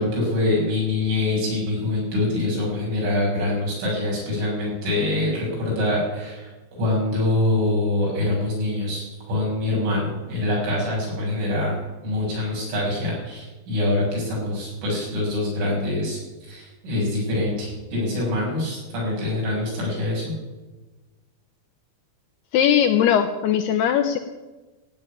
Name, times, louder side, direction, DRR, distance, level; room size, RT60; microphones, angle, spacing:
voice 1, 0.0-6.5 6.8-11.8 12.0-20.3, left 2 dB, 70° right, -4 dB, 9.4 m, -24 dB
voice 2, 22.5-24.2, left 9 dB, 90° left, 7 dB, 2.2 m, -19 dB
15.5 x 9.1 x 9.7 m, 1.2 s
omnidirectional pair, 5.7 m